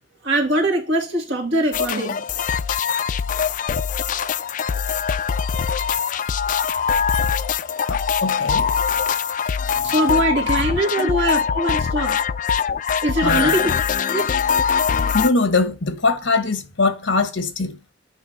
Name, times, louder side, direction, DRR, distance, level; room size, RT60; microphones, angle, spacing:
voice 1, 0.2-2.2 9.8-12.2 13.0-13.7 14.1-14.3, right 1 dB, 65° right, 2.2 m, -22 dB
sound 1, 1.7-15.3, left 7 dB, 40° left, 0.3 m, -22 dB
voice 2, 7.9-8.7 11.0-11.1 13.2-13.6 15.1-17.8, left 3 dB, 70° left, 1.1 m, -22 dB
8.2 x 3.2 x 5.7 m
head